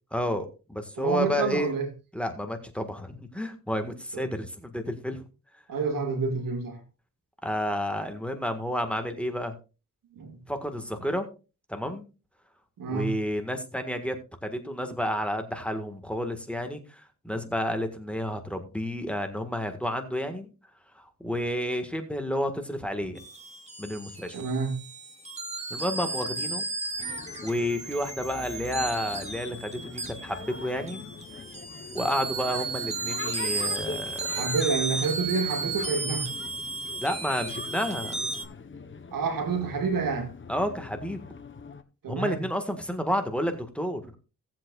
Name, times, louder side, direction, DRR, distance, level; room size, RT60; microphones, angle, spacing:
voice 1, 0.1-1.7 2.1-5.2 7.4-9.5 10.5-11.3 11.7-12.1 12.9-20.5 20.9-23.2 23.8-24.4 25.7-26.6 27.4-31.0 31.9-34.4 37.0-38.2 40.5-41.2 42.1-44.0, equal, 5° left, 1.7 m, -31 dB
voice 2, 1.0-1.9 4.1-4.2 5.7-6.8 10.1-10.4 12.8-13.2 24.3-24.9 34.4-36.4 39.1-40.3 42.0-42.4, right 4 dB, 90° right, 2.1 m, -28 dB
sound 1, 23.2-38.4, right 3 dB, 20° right, 2.3 m, -34 dB
sound 2, 27.0-41.8, left 5 dB, 35° left, 1.1 m, -42 dB
17.5 x 7.7 x 2.4 m
cardioid pair, 85°, 33 cm